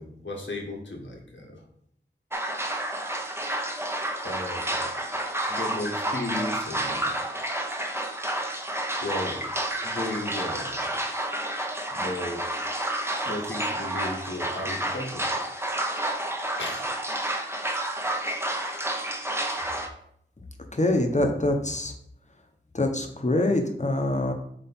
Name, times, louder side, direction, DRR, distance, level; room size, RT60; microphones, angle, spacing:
voice 1, 0.0-1.6 4.2-4.9 5.5-7.2 9.0-9.5 9.8-11.0 11.9-12.5 13.3-15.3 16.6-16.9, left 1 dB, 75° left, -1 dB, 1.6 m, -35 dB
sound 1, 2.3-19.9, right 1 dB, 15° right, 0.8 m, -30 dB
voice 2, 20.7-21.9 22.7-24.3, left 1 dB, 40° left, 4 dB, 1.0 m, -24 dB
7.7 x 3.1 x 4.4 m, 0.71 s
wide cardioid pair, 55°, 19 cm